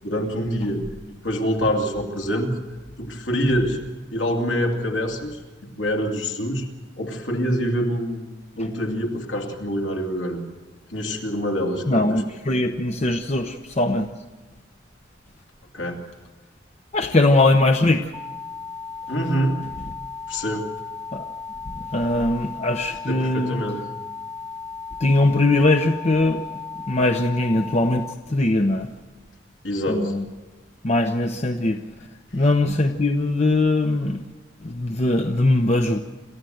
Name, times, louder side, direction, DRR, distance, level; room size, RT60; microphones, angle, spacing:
voice 1, 0.0-2.5 3.0-3.8 4.1-5.4 5.8-6.6 7.0-10.4 10.9-12.2 15.7-16.0 19.1-19.6 20.3-20.7 23.1-23.8 29.6-30.1, equal, 70° left, 1 dB, 2.9 m, -25 dB
voice 2, 11.9-14.1 16.9-18.1 21.1-21.3 21.9-23.6 25.0-26.4 26.9-28.9 29.9-30.2 30.8-31.8 32.3-34.2 34.6-36.0, left 2 dB, 35° left, 5 dB, 0.8 m, -21 dB
sound 1, 18.1-28.1, left 4 dB, 10° left, 1.4 m, -36 dB
27.5 x 14.0 x 7.9 m, 1.3 s
head